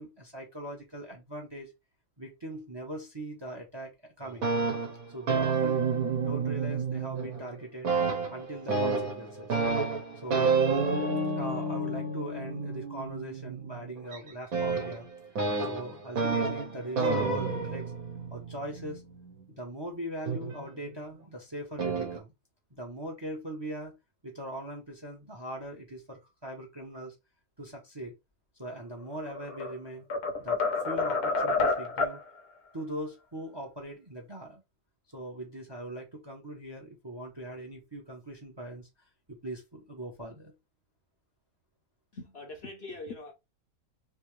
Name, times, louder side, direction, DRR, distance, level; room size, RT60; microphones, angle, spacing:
voice 1, 0.0-1.7 2.2-4.5 5.1-5.8 6.2-7.9 8.3-9.5 10.2-10.5 11.4-15.1 15.6-17.9 18.3-19.0 19.5-22.3 22.7-23.9 24.2-27.1 27.6-28.1 28.6-30.0 30.4-30.6 30.8-32.2 32.7-34.6 35.1-38.9 39.3-40.5, right 1 dB, 20° right, 0.7 m, -40 dB
sound 1, 4.2-7.5 7.8-19.4 20.3-21.1 21.8-22.2, right 4 dB, 70° right, 1.4 m, -30 dB
sound 2, 29.2-29.7 30.1-32.2, left 3 dB, 90° left, 1.3 m, -28 dB
voice 2, 42.1-43.3, left 2 dB, 55° left, 0.9 m, -42 dB
3.4 x 2.8 x 3.1 m
omnidirectional pair, 1.6 m